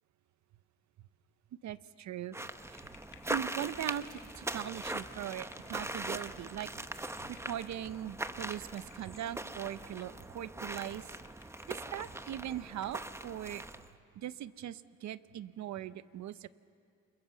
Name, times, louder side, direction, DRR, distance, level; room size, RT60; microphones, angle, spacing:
voice 1, 1.6-2.4 2.7-2.8 3.3-7.0 7.3-11.1 11.7-13.6 14.2-16.5, right 11 dB, 65° right, 15 dB, 0.8 m, -40 dB
sound 1, 2.3-13.9, right 2 dB, 10° right, 0.9 m, -41 dB
sound 2, 2.7-9.4 10.0-10.5 10.8-10.9 11.2-12.4 12.8-13.0, left 8 dB, 75° left, 2.0 m, -61 dB
29.0 x 22.5 x 7.1 m, 2.4 s
cardioid pair, 90°, 30 cm